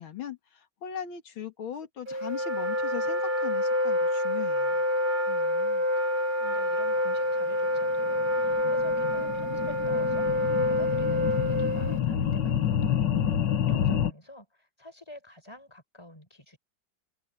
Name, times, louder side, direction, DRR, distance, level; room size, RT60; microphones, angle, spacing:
voice 1, 0.0-4.8, left 9 dB, 90° left, 2.6 m, -39 dB
Wind instrument woodwind instrument, 2.1-12.0, left 1 dB, 25° right, 1.6 m, -27 dB
voice 2, 5.2-13.0 13.6-16.6, left 1 dB, 15° left, 5.0 m, -48 dB
sound 1, 8.0-14.1, left 9 dB, 65° left, 2.0 m, -28 dB
omnidirectional pair, 2.2 m